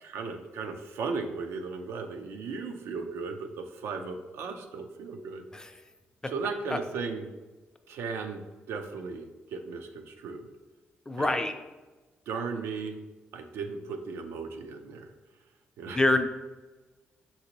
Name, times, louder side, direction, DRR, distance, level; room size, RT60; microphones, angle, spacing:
voice 1, 0.0-5.4 6.3-7.3 7.9-8.4 8.7-10.5 11.2-11.5 12.3-13.0 13.3-15.1 15.8-16.0, right 4 dB, 90° right, 4 dB, 0.5 m, -36 dB
voice 2, 11.1-11.5 15.9-16.2, left 2 dB, 15° left, 7 dB, 0.3 m, -25 dB
5.9 x 2.7 x 2.9 m, 1.2 s
cardioid pair, 95°, 4 cm